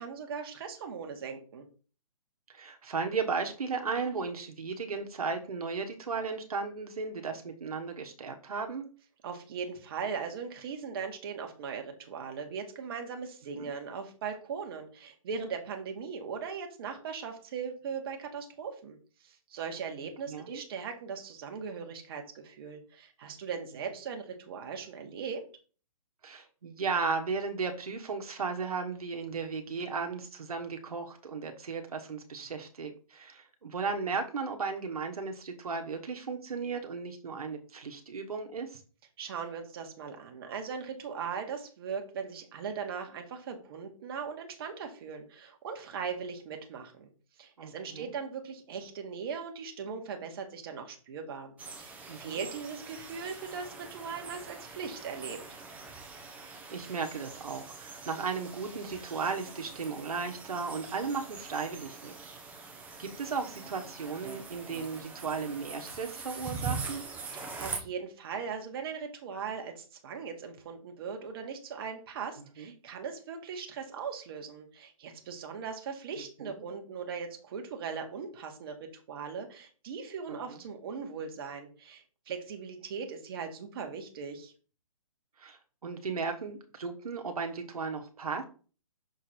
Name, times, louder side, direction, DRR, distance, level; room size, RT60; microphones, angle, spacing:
voice 1, 0.0-1.6 9.2-25.4 39.2-47.1 47.4-51.5 51.8-55.4 67.3-84.5, right 6 dB, 40° right, 4 dB, 1.4 m, -39 dB
voice 2, 2.5-8.9 13.6-13.7 20.3-20.6 26.2-38.8 47.6-48.1 52.1-52.4 56.4-62.1 63.0-67.0 72.6-72.7 76.4-76.7 80.3-80.4 85.4-88.4, right 5 dB, 85° right, 4 dB, 1.2 m, -35 dB
sound 1, 51.6-67.8, right 4 dB, 10° right, 0.9 m, -43 dB
6.3 x 3.9 x 4.3 m, 0.38 s
hypercardioid pair, 155°, 18 cm